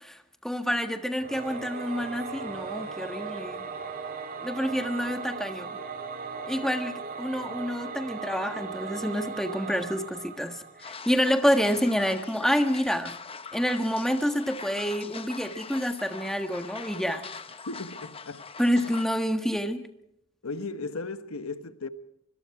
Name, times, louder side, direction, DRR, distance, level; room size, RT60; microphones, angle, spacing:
voice 1, 0.4-3.7 4.4-5.7 6.5-13.2 13.5-17.2 18.6-19.8, equal, ahead, 1.4 m, -28 dB
Singing / Musical instrument, 1.2-11.2, right 5 dB, 45° right, 1.9 m, -38 dB
sound 1, 10.8-19.1, left 5 dB, 25° left, 0.9 m, -42 dB
voice 2, 17.7-18.5 20.4-21.9, left 3 dB, 85° left, 1.2 m, -36 dB
25.0 x 22.0 x 4.8 m
head